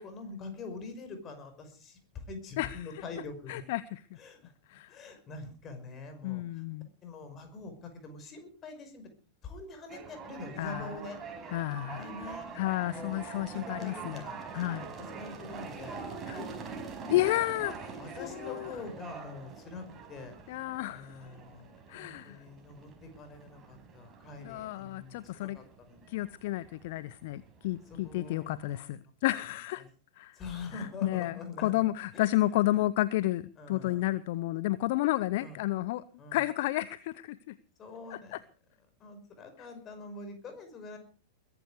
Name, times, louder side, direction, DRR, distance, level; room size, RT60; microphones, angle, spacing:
voice 1, 0.0-3.6 4.2-4.5 4.9-6.6 7.0-9.1 9.4-11.2 11.9-12.5 12.9-14.4 15.0-17.3 18.0-20.4 20.9-26.1 28.0-28.9 29.8-29.9 30.3-31.9 32.1-32.6 33.6-34.1 35.4-35.6 36.2-36.5 37.8-38.4 39.0-41.0, left 3 dB, 30° left, 7 dB, 5.5 m, -45 dB
voice 2, 2.6-3.0 3.5-4.0 4.7-5.0 6.2-6.9 10.6-10.9 11.5-14.2 14.5-14.9 16.3-16.4 17.1-18.7 20.5-21.3 21.9-22.4 24.4-25.6 26.1-29.8 30.2-30.4 30.7-36.0 36.3-37.6 38.1-38.4, left 16 dB, 50° left, 18 dB, 0.6 m, -31 dB
sound 1, 9.9-28.8, right 5 dB, 25° right, 4.9 m, -45 dB
22.0 x 11.0 x 4.9 m, 0.40 s
figure-of-eight pair, 95°, 0 cm